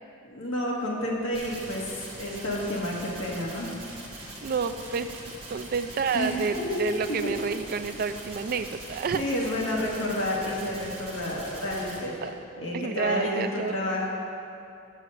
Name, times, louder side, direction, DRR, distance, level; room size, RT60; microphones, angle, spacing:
voice 1, 0.2-3.7 6.1-7.3 9.1-14.1, left 1 dB, 65° left, -4 dB, 1.7 m, -30 dB
sound 1, 1.3-12.0, right 1 dB, 25° right, 1.5 m, -42 dB
voice 2, 4.4-5.2 5.5-9.2 12.2-12.3 12.7-13.8, right 5 dB, 45° right, 9 dB, 0.3 m, -29 dB
6.8 x 6.4 x 6.6 m, 2.6 s
head